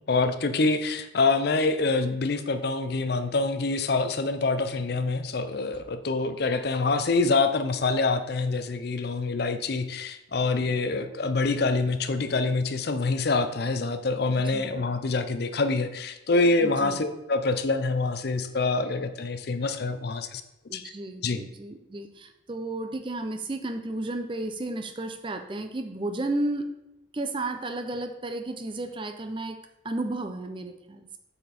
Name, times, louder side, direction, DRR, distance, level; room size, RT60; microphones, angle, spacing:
voice 1, 0.1-20.4 20.7-20.9 21.2-21.4, left 3 dB, 50° left, 9 dB, 0.5 m, -26 dB
voice 2, 14.5-14.8 16.6-17.0 20.7-26.7 27.1-29.6 29.8-31.1, right 2 dB, 25° right, 6 dB, 0.5 m, -33 dB
8.0 x 4.3 x 4.2 m, 0.93 s
head